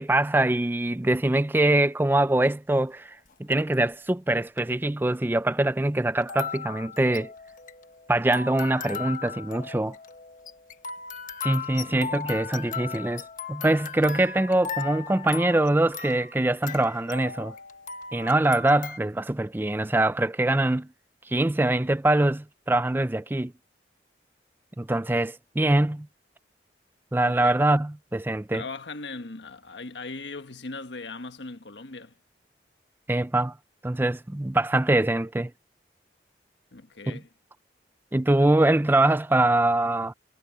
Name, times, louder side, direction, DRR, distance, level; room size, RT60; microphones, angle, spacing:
voice 1, 0.0-7.3 8.1-10.0 11.4-17.5 18.1-20.9 21.3-23.5 24.8-26.1 27.1-28.6 33.1-33.5 33.8-35.5 37.1-37.2 38.1-40.1, right 1 dB, 10° right, 0.4 m, -23 dB
sound 1, 3.3-3.7 4.6-4.7 6.2-19.0, left 6 dB, 50° left, 1.3 m, -37 dB
voice 2, 28.5-32.1 36.7-37.3, left 3 dB, 85° left, 1.4 m, -39 dB
head